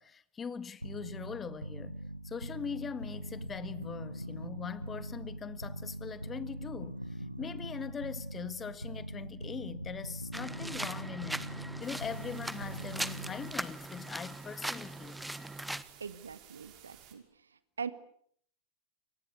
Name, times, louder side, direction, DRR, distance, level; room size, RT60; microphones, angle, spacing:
voice 1, 0.0-2.0 2.2-11.5 11.8-15.2, left 6 dB, 20° left, 1.6 m, -42 dB
sound 1, 0.8-13.7, right 1 dB, 90° left, 1.4 m, -42 dB
sound 2, 10.3-15.8, right 1 dB, 5° right, 1.3 m, -40 dB
sound 3, 11.8-17.1, right 11 dB, 40° right, 6.0 m, -56 dB
voice 2, 16.0-17.9, right 6 dB, 75° right, 1.7 m, -42 dB
29.0 x 23.5 x 8.3 m
figure-of-eight pair, 90°, 0 cm